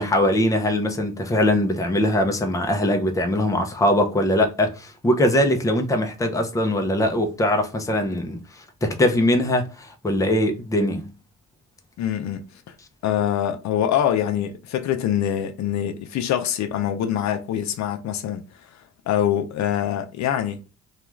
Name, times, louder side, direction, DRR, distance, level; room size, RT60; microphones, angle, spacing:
voice 1, 0.0-11.1, left 1 dB, 10° left, 0.5 m, -21 dB
voice 2, 12.0-12.7 13.0-18.4 19.1-20.6, left 10 dB, 65° left, 0.4 m, -24 dB
2.3 x 2.3 x 3.0 m
cardioid pair, 90°, 30 cm